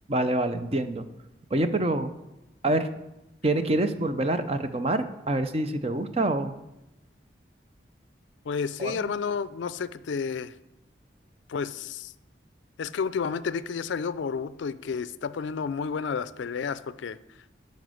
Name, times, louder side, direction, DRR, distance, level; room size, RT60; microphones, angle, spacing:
voice 1, 0.1-1.1 1.5-2.1 2.6-2.9 3.4-6.5 8.8-9.0, right 2 dB, 30° right, 9 dB, 0.5 m, -26 dB
voice 2, 8.5-10.5 11.5-12.1 12.8-17.2, left 6 dB, 75° left, 15 dB, 0.4 m, -31 dB
9.2 x 5.3 x 6.2 m, 0.93 s
head